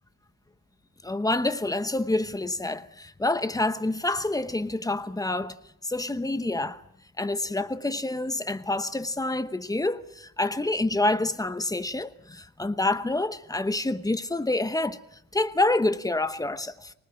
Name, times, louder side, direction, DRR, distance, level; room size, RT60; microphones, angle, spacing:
voice 1, 1.0-5.6 5.8-6.8 7.2-15.0 15.3-16.9, left 2 dB, 10° left, 1.0 m, -27 dB
25.0 x 19.0 x 8.9 m
cardioid pair, 150°, 35 cm